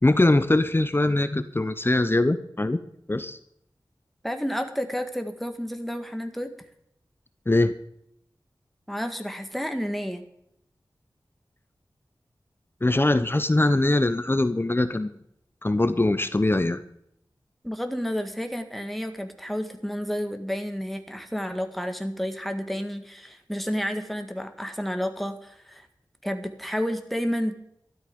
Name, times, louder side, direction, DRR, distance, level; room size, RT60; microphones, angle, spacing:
voice 1, 0.0-2.8 3.1-3.4 7.5-7.7 12.8-15.2 15.6-16.8, left 2 dB, 25° left, 12 dB, 0.8 m, -22 dB
voice 2, 4.2-6.5 8.9-10.2 17.6-25.9 26.2-27.5, equal, ahead, 6 dB, 1.7 m, -30 dB
13.0 x 12.0 x 5.3 m, 0.75 s
wide cardioid pair, 65°, 8 cm